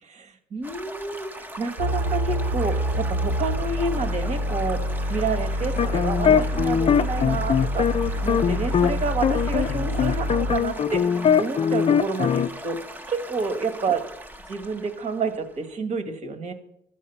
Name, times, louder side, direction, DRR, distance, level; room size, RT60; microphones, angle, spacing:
voice 1, 0.0-14.0 14.5-16.5, right 4 dB, 45° right, 8 dB, 1.9 m, -29 dB
Stream / Gurgling / Trickle dribble, 0.6-15.7, right 1 dB, 10° right, 1.1 m, -40 dB
sound 1, 1.8-10.6, equal, 85° right, 5.0 m, -27 dB
sound 2, 5.6-8.9 9.2-12.5, left 7 dB, 35° left, 0.5 m, -21 dB
13.5 x 8.7 x 5.7 m, 0.75 s
cardioid pair, 110°, 17 cm